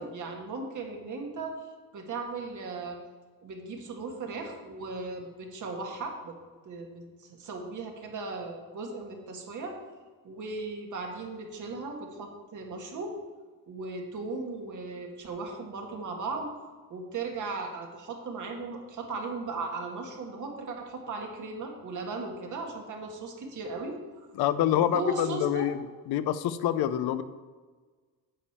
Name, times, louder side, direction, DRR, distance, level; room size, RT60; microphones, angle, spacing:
voice 1, 0.0-1.5 1.9-3.0 3.4-6.4 6.7-9.8 10.2-13.2 13.7-16.5 16.9-24.0 24.4-24.5 24.7-25.7, right 3 dB, 55° right, 2 dB, 1.9 m, -37 dB
voice 2, 24.4-25.8 26.1-27.2, left 11 dB, 80° left, 13 dB, 0.7 m, -26 dB
8.9 x 5.1 x 7.3 m, 1.4 s
cardioid pair, 120°, 37 cm